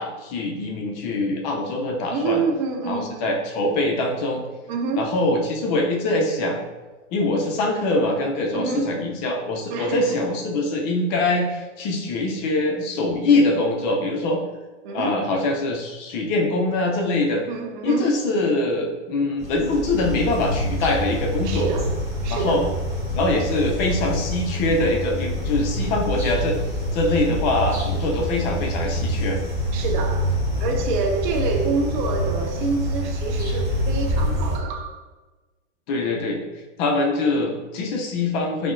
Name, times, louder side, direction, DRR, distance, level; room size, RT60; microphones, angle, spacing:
voice 1, 0.0-2.4 2.8-4.4 4.9-6.6 7.1-14.4 14.9-17.4 17.8-21.7 22.3-22.7 23.1-26.6 26.9-29.4 35.9-38.7, left 2 dB, 40° left, 2 dB, 0.5 m, -23 dB
voice 2, 2.1-3.3 4.7-5.2 8.5-9.0 9.7-10.2 10.6-10.8 14.8-15.2 17.3-18.2 21.4-22.0 22.2-22.7 29.7-35.0, right 4 dB, 40° right, 3 dB, 0.5 m, -27 dB
sound 1, 19.4-34.6, equal, 10° right, 1.0 m, -26 dB
3.4 x 2.7 x 2.5 m, 1.2 s
hypercardioid pair, 125°, 36 cm